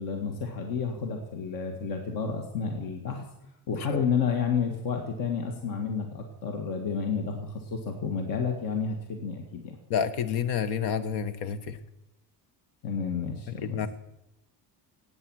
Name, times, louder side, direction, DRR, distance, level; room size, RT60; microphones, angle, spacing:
voice 1, 0.0-3.3 3.7-9.8 12.8-13.9, left 6 dB, 60° left, 3 dB, 1.9 m, -31 dB
voice 2, 9.9-11.8 13.6-13.9, left 7 dB, 80° left, 12 dB, 1.3 m, -29 dB
16.5 x 9.0 x 6.3 m, 0.88 s
cardioid pair, 155°, 38 cm